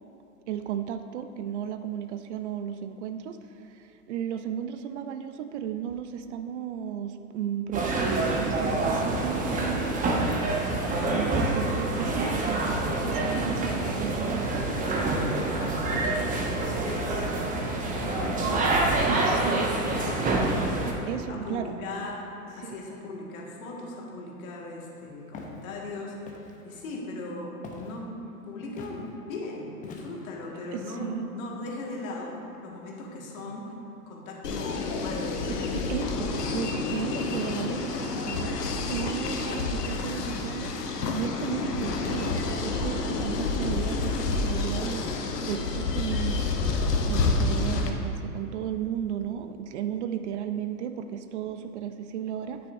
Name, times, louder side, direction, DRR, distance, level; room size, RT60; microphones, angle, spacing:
voice 1, 0.5-10.0 11.1-14.7 19.1-19.6 20.8-21.8 22.6-22.8 30.7-31.3 35.5-38.6 38.9-46.4 47.1-52.6, right 9 dB, 50° right, 9 dB, 0.5 m, -34 dB
sound 1, 7.7-20.9, right 2 dB, 15° right, 0.8 m, -27 dB
voice 2, 15.5-18.7 19.0-22.2 22.6-28.1 28.5-32.4 32.6-33.8 34.1-35.8 36.1-36.3, left 2 dB, 60° left, -2 dB, 1.8 m, -38 dB
Walk footsteps, 25.3-25.6 26.2-26.6 27.6-28.0 28.8-29.0 29.8-30.3, left 4 dB, 15° left, 0.7 m, -43 dB
sound 2, 34.4-47.9, left 3 dB, 90° left, 0.9 m, -29 dB
9.3 x 8.7 x 2.6 m, 2.7 s
hypercardioid pair, 115°, 46 cm